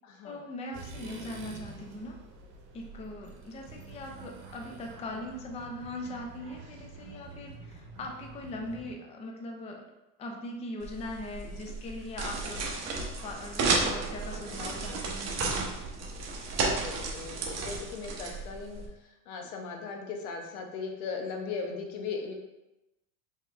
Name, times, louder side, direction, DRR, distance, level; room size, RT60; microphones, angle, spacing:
voice 1, 0.2-2.2 2.7-9.9 10.2-12.7 13.2-15.7, left 1 dB, 15° left, 1 dB, 0.5 m, -40 dB
sound 1, 0.7-9.0, right 3 dB, 60° right, 1.1 m, -47 dB
sound 2, 10.8-18.9, right 3 dB, 35° right, 0.9 m, -33 dB
voice 2, 16.4-22.3, left 5 dB, 70° left, 3 dB, 0.9 m, -38 dB
4.5 x 3.4 x 2.5 m, 0.96 s
hypercardioid pair, 100°, 45 cm